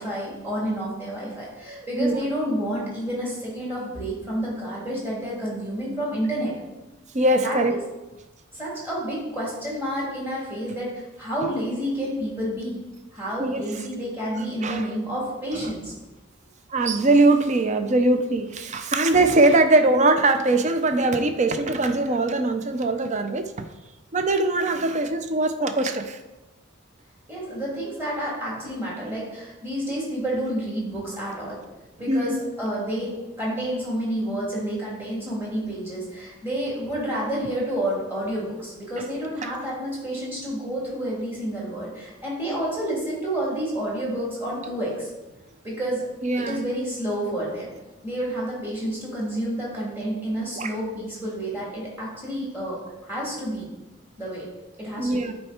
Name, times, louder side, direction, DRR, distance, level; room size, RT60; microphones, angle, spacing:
voice 1, 0.0-6.5 7.4-7.8 8.5-12.8 13.1-15.9 27.3-31.6 32.0-45.1 45.6-46.1 46.4-47.7 48.0-52.8 53.1-53.7 54.2-54.5 54.8-55.3, right 1 dB, 10° right, 3.0 m, -29 dB
voice 2, 1.7-2.2 7.1-7.8 13.4-13.7 14.6-14.9 15.5-15.7 16.7-23.5 24.1-26.2 32.1-32.4 39.0-39.1 39.4-39.5 46.2-46.7 50.6-50.7 55.0-55.3, right 2 dB, 35° right, 0.5 m, -21 dB
9.9 x 4.5 x 4.3 m
head